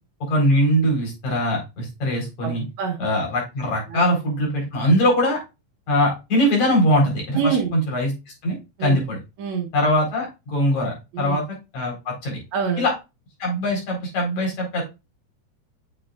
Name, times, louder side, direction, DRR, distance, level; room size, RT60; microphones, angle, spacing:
voice 1, 0.2-2.6 3.0-5.4 5.9-8.1 8.4-9.2 9.7-11.4 11.7-12.4 12.8-12.9 13.4-14.8, equal, 60° left, -1 dB, 5.7 m, -22 dB
voice 2, 2.4-3.0 3.9-4.0 7.3-7.7 8.8-9.0 9.4-9.7 11.1-11.4 12.5-12.8, right 6 dB, 65° right, 3 dB, 2.3 m, -25 dB
8.9 x 6.8 x 2.5 m, 0.25 s
omnidirectional pair, 3.7 m